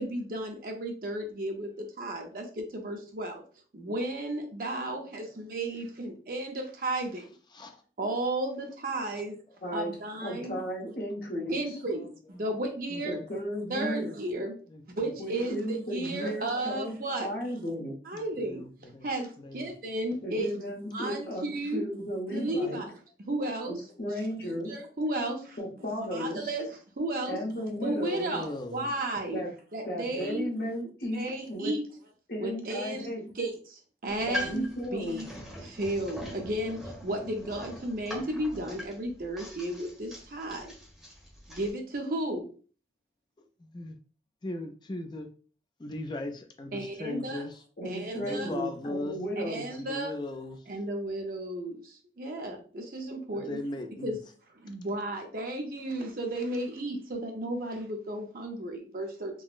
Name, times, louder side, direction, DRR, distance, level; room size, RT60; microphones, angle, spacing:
voice 1, 0.0-3.4 3.7-7.3 8.0-9.4 9.7-10.6 11.5-13.2 13.7-14.5 15.0-17.3 18.0-18.6 19.0-20.5 20.9-21.9 22.3-22.9 23.3-23.8 24.7-25.6 26.1-27.4 27.8-29.4 29.7-30.5 31.1-31.8 32.4-33.1 33.4-34.6 34.9-35.3 35.6-40.7 41.5-42.5 46.7-47.5 47.8-48.5 49.4-50.1 50.7-53.6 54.0-54.2 54.6-59.4, right 1 dB, 55° right, 3 dB, 0.6 m, -33 dB
voice 2, 7.5-7.8 9.0-9.3 9.9-10.0 11.4-11.5 11.9-12.1 12.9-13.3 14.7-15.1 16.4-16.7 18.1-19.1 19.4-19.7 28.3-28.9 34.2-34.3 43.4-44.0 44.4-45.3 45.8-47.6 48.1-49.2 49.7-50.7 53.3-54.2, left 1 dB, 25° left, 5 dB, 0.3 m, -39 dB
voice 3, 9.6-9.9 10.2-11.6 13.0-14.1 15.2-16.9 17.2-18.0 20.2-22.8 23.7-24.7 25.6-26.5 27.3-28.3 29.3-29.5 29.8-31.7 32.3-33.2 34.2-35.2 47.8-49.6, equal, 55° left, -1 dB, 0.8 m, -34 dB
sound 1, 34.1-41.7, left 1 dB, ahead, 0.9 m, -42 dB
3.7 x 2.0 x 2.4 m, 0.39 s
head